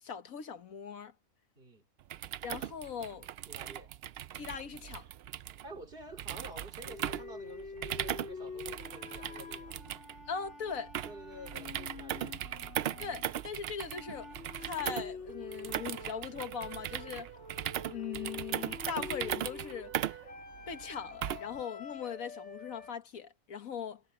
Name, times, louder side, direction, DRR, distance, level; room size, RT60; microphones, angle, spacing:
voice 1, 0.0-1.1 2.4-3.3 4.4-5.1 10.3-10.9 13.0-14.3 14.6-17.3 17.9-20.2 20.7-24.0, left 7 dB, 85° left, 1.7 m, -40 dB
voice 2, 1.5-1.9 3.5-3.9 5.6-9.8 11.0-12.4, right 1 dB, 40° right, 3.1 m, -49 dB
sound 1, 2.0-21.6, right 11 dB, 65° right, 0.6 m, -39 dB
sound 2, 6.9-13.4 13.9-22.9, left 4 dB, 55° left, 2.5 m, -47 dB
omnidirectional pair, 1.4 m